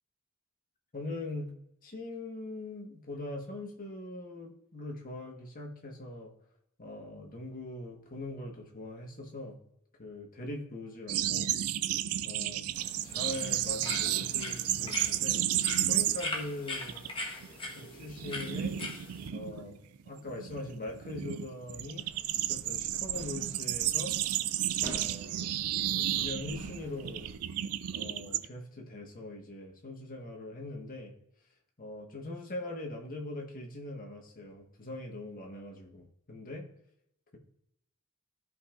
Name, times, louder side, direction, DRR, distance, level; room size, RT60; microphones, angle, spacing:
voice 1, 0.9-1.5 1.8-6.3 6.8-9.6 10.0-11.5 12.2-12.8 13.0-15.4 15.9-17.1 17.7-18.7 19.3-22.1 22.3-24.1 24.8-25.6 25.9-27.3 27.9-31.1 31.8-36.7, left 2 dB, 40° left, 0 dB, 1.6 m, -41 dB
sound 1, 11.1-16.5 16.7-17.1 17.4-28.5, right 12 dB, 80° right, 0.4 m, -32 dB
sound 2, 12.7-19.3, left 2 dB, 25° left, 1.4 m, -41 dB
sound 3, 22.0-27.4, right 1 dB, 30° right, 3.0 m, -49 dB
14.5 x 5.5 x 2.6 m, 0.79 s
head